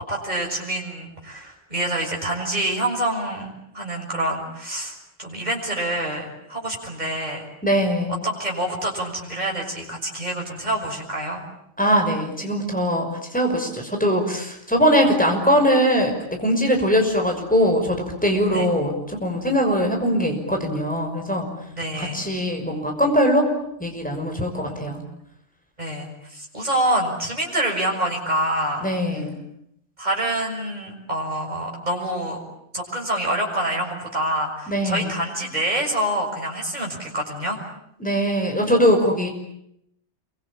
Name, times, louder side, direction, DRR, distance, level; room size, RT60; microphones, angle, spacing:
voice 1, 0.0-7.4 8.2-11.4 18.5-18.7 21.7-22.2 24.6-25.0 25.8-28.9 30.0-32.4 32.7-37.6, right 1 dB, 40° right, 0 dB, 6.6 m, -26 dB
voice 2, 7.6-8.2 11.8-16.1 16.4-21.5 22.0-23.5 23.8-25.0 28.8-29.4 34.7-35.2 38.0-39.3, equal, 5° left, 3 dB, 5.9 m, -21 dB
27.5 x 24.0 x 8.9 m, 0.76 s
omnidirectional pair, 1.2 m